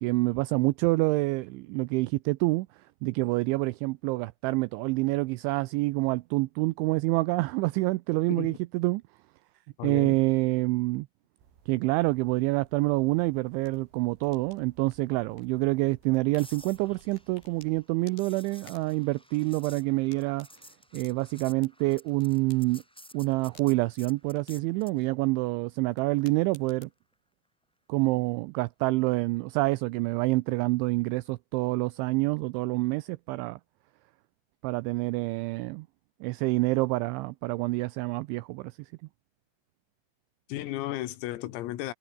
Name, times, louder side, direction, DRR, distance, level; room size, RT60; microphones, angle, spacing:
voice 1, 0.0-2.7 3.0-9.0 9.8-11.1 11.7-20.5 20.9-22.8 23.1-26.9 27.9-33.6 34.6-35.9 36.2-38.7, right 22 dB, 90° right, 2.7 m, -27 dB
voice 2, 9.8-10.2 40.5-41.9, left 15 dB, 85° left, 4.2 m, -34 dB
sound 1, 11.4-17.8, right 7 dB, 70° right, 6.8 m, -60 dB
sound 2, 13.0-27.1, left 5 dB, 55° left, 8.5 m, -61 dB
sound 3, 16.4-25.0 29.2-29.4, equal, ahead, 7.4 m, -53 dB
omnidirectional pair, 6.0 m